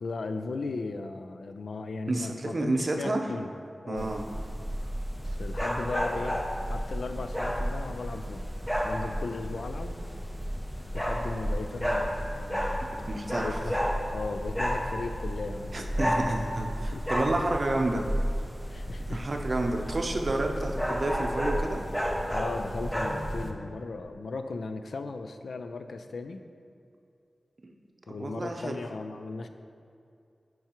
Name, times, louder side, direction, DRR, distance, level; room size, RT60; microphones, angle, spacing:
voice 1, 0.0-3.5 3.8-4.1 5.2-6.4 6.7-8.5 8.8-10.0 10.9-12.8 13.4-13.9 14.1-16.2 16.8-17.0 18.7-19.2 22.3-26.4 28.1-29.5, left 3 dB, 85° left, 8 dB, 0.4 m, -37 dB
voice 2, 2.1-3.3 3.9-4.2 12.8-13.6 15.7-18.1 19.1-21.8 27.6-27.7 28.1-28.8, right 2 dB, 45° right, 3 dB, 0.6 m, -30 dB
sound 1, 4.0-23.5, equal, 10° left, 0.6 m, -32 dB
10.0 x 4.6 x 3.0 m, 2.5 s
wide cardioid pair, 95°, 0 cm